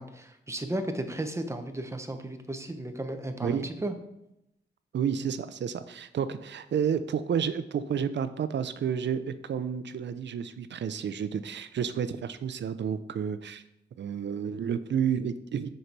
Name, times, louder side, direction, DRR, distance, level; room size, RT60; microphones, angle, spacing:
voice 1, 0.0-3.9, right 1 dB, 15° right, 6 dB, 0.8 m, -34 dB
voice 2, 3.4-3.8 4.9-13.6 14.0-15.7, right 7 dB, 85° right, 12 dB, 0.5 m, -30 dB
6.6 x 5.5 x 4.6 m, 0.84 s
wide cardioid pair, 100°, 18 cm